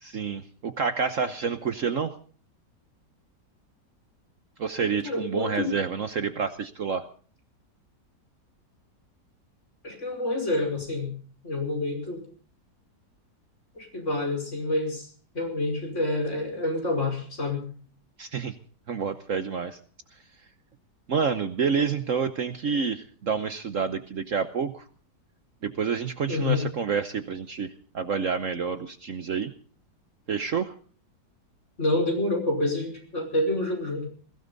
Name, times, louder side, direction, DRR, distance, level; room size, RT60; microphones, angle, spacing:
voice 1, 0.0-2.1 4.6-7.1 18.2-18.5 18.9-19.8 21.1-24.8 25.6-29.5 30.3-30.7, right 6 dB, 55° right, 10 dB, 1.2 m, -28 dB
voice 2, 5.0-5.8 9.8-11.1 11.4-12.2 13.8-15.1 15.3-17.6 26.3-26.7 31.8-34.1, left 2 dB, 45° left, 2 dB, 5.8 m, -28 dB
21.5 x 16.5 x 4.0 m, 0.43 s
omnidirectional pair, 1.8 m